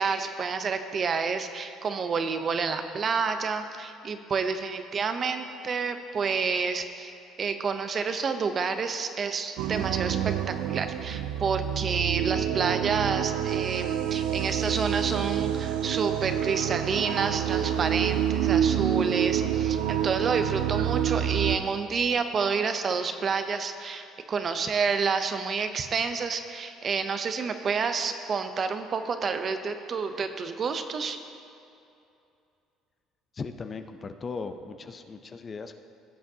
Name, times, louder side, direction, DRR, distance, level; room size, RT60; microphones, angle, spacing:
voice 1, 0.0-7.1 7.4-10.2 10.5-31.2, right 5 dB, 40° right, 8 dB, 0.6 m, -29 dB
sound 1, 9.6-21.6, right 9 dB, 85° right, 0.4 m, -27 dB
voice 2, 33.3-35.8, left 4 dB, 30° left, 8 dB, 0.5 m, -38 dB
16.5 x 7.7 x 2.8 m, 2.6 s
cardioid pair, 115°, 0 cm